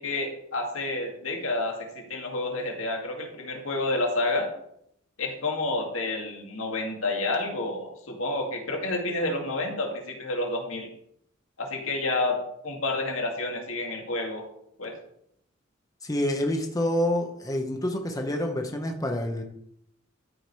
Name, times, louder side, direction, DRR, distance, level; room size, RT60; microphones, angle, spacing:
voice 1, 0.0-4.5 5.2-10.9 11.6-14.5 14.8-14.9, left 2 dB, 75° left, 1 dB, 2.3 m, -29 dB
voice 2, 16.0-19.4, left 1 dB, 20° left, 3 dB, 1.1 m, -27 dB
13.0 x 5.1 x 4.8 m, 0.71 s
head